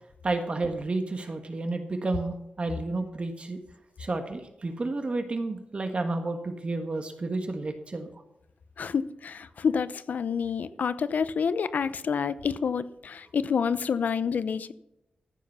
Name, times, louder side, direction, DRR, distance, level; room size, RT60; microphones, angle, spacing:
voice 1, 0.2-3.6 4.0-8.1, right 2 dB, 45° right, 6 dB, 1.5 m, -31 dB
voice 2, 8.8-14.7, left 6 dB, 80° left, 14 dB, 0.7 m, -28 dB
14.5 x 7.3 x 5.6 m, 0.85 s
wide cardioid pair, 95°, 3 cm